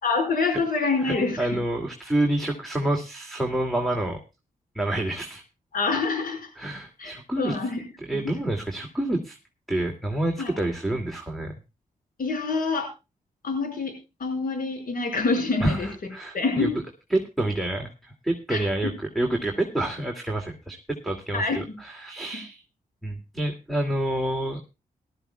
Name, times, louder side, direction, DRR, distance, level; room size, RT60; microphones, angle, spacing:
voice 1, 0.0-1.5 5.7-6.5 7.0-7.8 10.4-10.5 12.2-12.9 13.4-13.9 14.2-15.9 16.3-16.7 18.5-18.6 21.3-21.6 22.3-22.4, left 4 dB, 70° left, 4 dB, 5.5 m, -26 dB
voice 2, 1.0-4.2 4.7-5.4 6.6-7.6 8.0-9.4 9.7-11.5 15.6-16.7 17.1-22.6 23.0-24.6, right 1 dB, ahead, 3 dB, 2.5 m, -28 dB
18.5 x 13.0 x 2.3 m, 0.28 s
cardioid pair, 60°, 16 cm